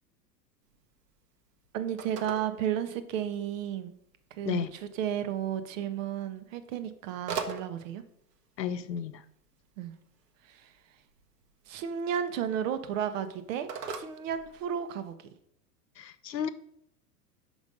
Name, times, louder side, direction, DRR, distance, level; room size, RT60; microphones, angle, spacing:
Telephone, 0.6-15.1, right 5 dB, 75° right, 1.1 m, -45 dB
voice 1, 1.7-3.9 4.4-8.0 9.8-9.9 10.5-10.7 11.7-15.2, right 9 dB, 50° right, 10 dB, 0.9 m, -33 dB
voice 2, 8.6-9.2 16.0-16.5, left 8 dB, 85° left, 13 dB, 0.7 m, -32 dB
5.4 x 5.0 x 5.2 m, 0.74 s
hypercardioid pair, 105°, 48 cm